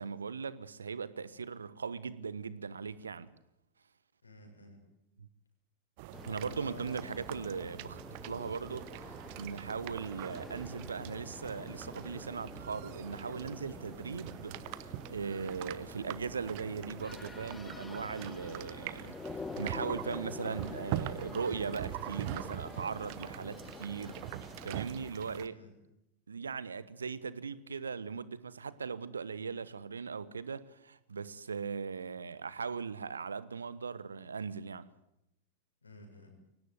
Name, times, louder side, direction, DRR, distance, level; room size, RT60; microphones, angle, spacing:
voice 1, 0.0-3.3 5.2-5.3 6.3-8.9 9.4-19.1 19.6-25.5 26.3-34.9, right 5 dB, 75° right, 1.2 m, -39 dB
voice 2, 4.2-4.8 6.4-7.0 25.3-25.7 35.8-36.3, left 1 dB, 80° left, 6.9 m, -51 dB
sound 1, 6.0-25.5, right 16 dB, 45° right, 1.0 m, -44 dB
sound 2, 6.1-25.1, left 4 dB, 10° left, 0.8 m, -47 dB
23.5 x 18.0 x 9.3 m
figure-of-eight pair, 90°, 0 cm